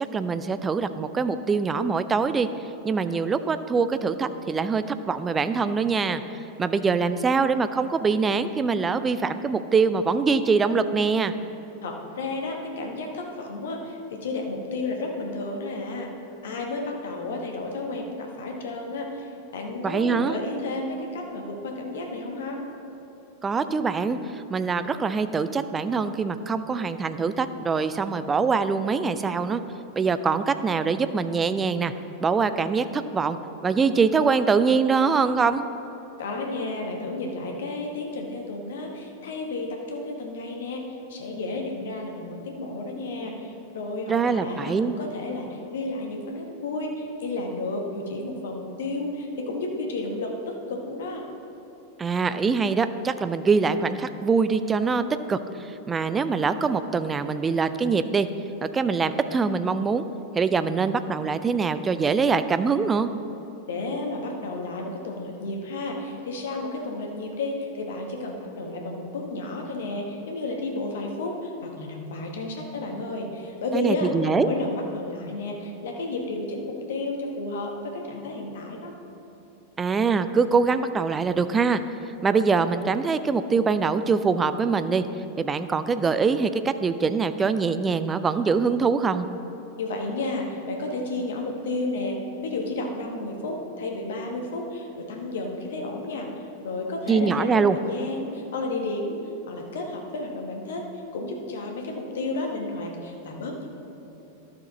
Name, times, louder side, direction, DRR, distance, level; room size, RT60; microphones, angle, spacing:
voice 1, 0.1-2.5 2.8-6.2 6.6-11.3 19.8-20.4 23.4-29.6 29.9-31.9 32.2-33.4 33.6-35.6 44.1-45.0 52.0-58.3 58.6-60.0 60.3-63.1 73.7-74.5 79.8-81.8 82.2-85.0 85.4-89.3 97.1-97.8, right 5 dB, 20° right, 11 dB, 0.4 m, -23 dB
voice 2, 11.8-16.1 16.4-22.6 36.2-40.8 41.1-51.2 63.7-78.9 89.8-96.3 96.6-99.2 99.5-100.8 101.1-103.7, left 2 dB, 60° left, 2 dB, 1.3 m, -32 dB
12.0 x 6.7 x 4.1 m, 2.9 s
figure-of-eight pair, 90°, 0 cm